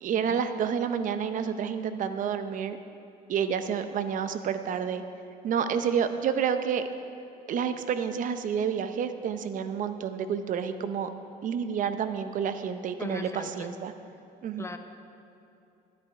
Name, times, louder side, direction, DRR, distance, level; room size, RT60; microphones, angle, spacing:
voice 1, 0.0-2.8 3.3-5.0 5.4-6.8 7.5-11.1 11.4-13.9 14.4-14.6, right 7 dB, 50° right, 10 dB, 0.7 m, -29 dB
voice 2, 13.0-13.7 14.6-14.8, left 3 dB, 15° left, 7 dB, 0.8 m, -38 dB
12.0 x 10.0 x 4.7 m, 2.8 s
cardioid pair, 125°, 17 cm